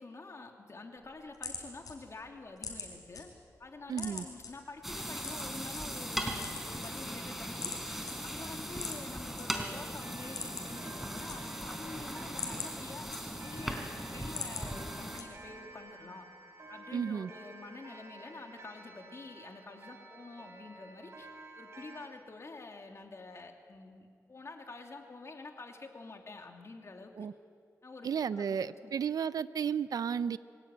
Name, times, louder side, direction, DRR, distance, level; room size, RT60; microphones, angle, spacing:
voice 1, 0.0-3.3 3.6-13.1 13.4-13.8 14.1-16.3 16.7-21.3 21.6-27.3 27.8-28.9, left 3 dB, 50° left, 3 dB, 2.7 m, -48 dB
sound 1, 1.0-3.2 3.6-4.5 5.2-5.8 6.3-7.2 7.6-7.8 8.1-8.2 8.7-9.4 9.8-9.9 10.2-10.8 11.1-11.8 12.2-13.6 14.0-14.7 15.2-15.6, left 5 dB, 75° left, 5.3 m, -42 dB
voice 2, 3.9-4.2 16.9-17.3 27.2-27.3 28.0-30.4, right 7 dB, 80° right, 15 dB, 0.6 m, -33 dB
sound 2, 4.8-15.2, equal, 5° right, 3.9 m, -39 dB
Clock, 10.0-22.1, right 2 dB, 45° right, 3.9 m, -52 dB
25.0 x 17.0 x 9.1 m, 2.2 s
cardioid pair, 70°, 6 cm